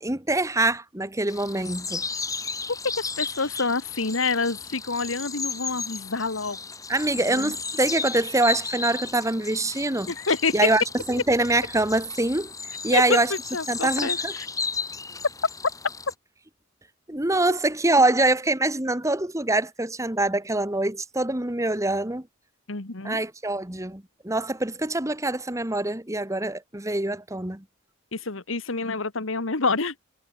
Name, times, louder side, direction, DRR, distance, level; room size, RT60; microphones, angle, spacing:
voice 1, 0.0-2.0 6.9-10.1 10.5-12.5 12.8-13.3 13.7-14.3 17.1-22.3 23.0-27.6, right 2 dB, 15° right, 1.7 m, -24 dB
sound 1, 1.3-16.1, left 4 dB, 15° left, 7.3 m, -34 dB
voice 2, 3.0-6.6 7.3-7.5 10.1-10.5 12.9-14.5 22.7-23.2 28.1-29.9, left 4 dB, 75° left, 1.8 m, -27 dB
head